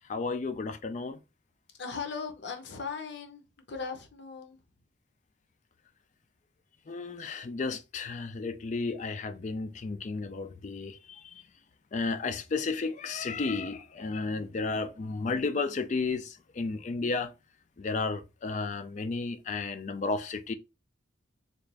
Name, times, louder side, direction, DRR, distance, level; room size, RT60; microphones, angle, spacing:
voice 1, 0.1-1.2 6.9-11.4 11.9-17.3 17.8-20.5, left 4 dB, 40° left, 0.3 m, -33 dB
voice 2, 1.8-4.6, left 5 dB, 65° left, 0.8 m, -38 dB
3.9 x 2.4 x 3.3 m
head